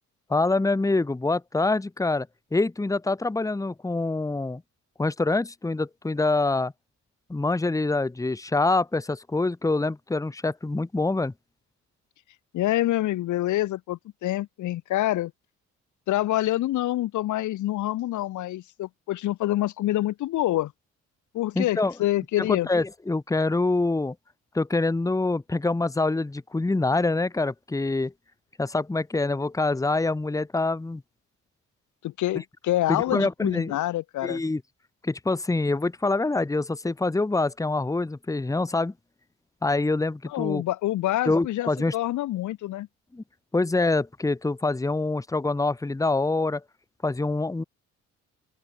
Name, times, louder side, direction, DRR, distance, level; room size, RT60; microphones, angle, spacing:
voice 1, 0.3-4.6 5.0-6.7 7.3-11.3 21.5-21.9 22.4-24.1 24.5-28.1 28.6-31.0 32.9-33.8 34.2-34.6 35.0-38.9 39.6-40.6 41.3-41.9 43.1-43.2 43.5-46.6 47.0-47.6, left 3 dB, 10° left, 1.1 m, -25 dB
voice 2, 12.5-15.3 16.1-20.7 21.3-22.7 32.0-34.4 40.2-42.9, left 15 dB, 75° left, 1.0 m, -26 dB
open air
cardioid pair, 90°, 30 cm